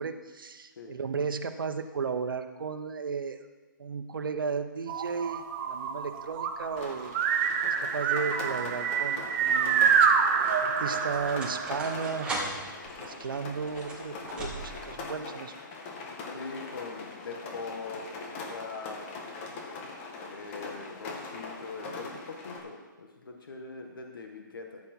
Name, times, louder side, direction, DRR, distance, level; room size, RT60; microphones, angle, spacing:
voice 1, 0.0-3.4 3.8-7.2 7.8-9.9 10.6-12.3 13.0-15.5, right 5 dB, 80° right, 7 dB, 1.1 m, -34 dB
sound 1, 4.9-12.5, right 6 dB, 35° right, 1.0 m, -27 dB
Rain, 6.8-22.6, left 3 dB, 35° left, 2.2 m, -42 dB
sound 2, 9.7-15.0, right 2 dB, 10° right, 2.8 m, -40 dB
voice 2, 16.3-19.0 20.3-24.8, left 4 dB, 80° left, 2 dB, 1.9 m, -42 dB
14.0 x 8.6 x 4.6 m, 1.2 s
hypercardioid pair, 150°, 11 cm